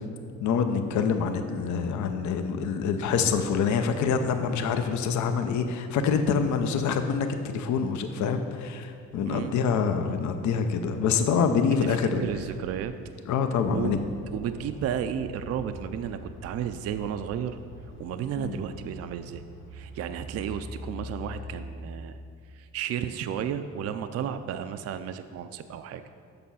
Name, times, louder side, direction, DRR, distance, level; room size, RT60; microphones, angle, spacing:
voice 1, 0.4-12.2 13.3-14.0 18.4-18.6, left 6 dB, 70° left, 7 dB, 0.6 m, -26 dB
voice 2, 11.8-12.9 13.7-14.0 14.3-17.6 18.0-19.4 19.7-22.2 22.5-26.0, right 9 dB, 55° right, 10 dB, 0.4 m, -33 dB
sound 1, 13.9-21.7, left 2 dB, 40° left, 1.2 m, -44 dB
6.8 x 6.1 x 5.5 m, 2.3 s
cardioid pair, 90°, 30 cm